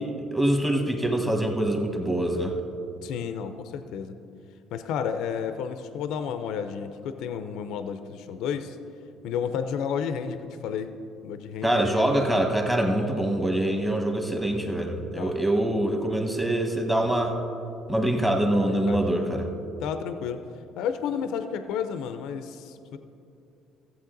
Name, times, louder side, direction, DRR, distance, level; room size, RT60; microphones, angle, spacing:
voice 1, 0.0-2.5 11.6-17.4 17.9-19.4, right 1 dB, 10° right, 3 dB, 1.3 m, -24 dB
voice 2, 3.0-4.2 4.7-8.8 9.2-10.9 11.2-12.4 13.0-13.2 15.2-15.4 18.9-19.5 19.8-20.4 20.8-23.0, left 7 dB, 75° left, 9 dB, 0.5 m, -32 dB
14.5 x 7.7 x 3.9 m, 2.7 s
cardioid pair, 110°, 0 cm